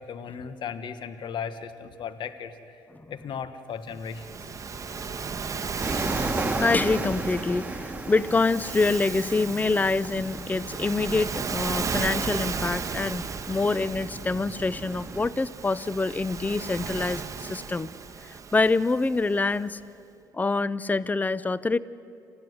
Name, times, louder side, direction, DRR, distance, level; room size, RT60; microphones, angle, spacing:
voice 1, 0.0-2.8 3.1-4.5, left 7 dB, 60° left, 10 dB, 1.4 m, -36 dB
Waves surf, 4.0-19.5, right 5 dB, 35° right, 1.2 m, -35 dB
voice 2, 4.8-5.3 6.6-17.9 18.2-19.8 20.3-21.8, left 3 dB, 20° left, 17 dB, 0.7 m, -26 dB
sound 1, 5.8-15.3, right 2 dB, 15° right, 1.8 m, -35 dB
27.5 x 16.0 x 9.5 m, 2.7 s
supercardioid pair, 60°, 9 cm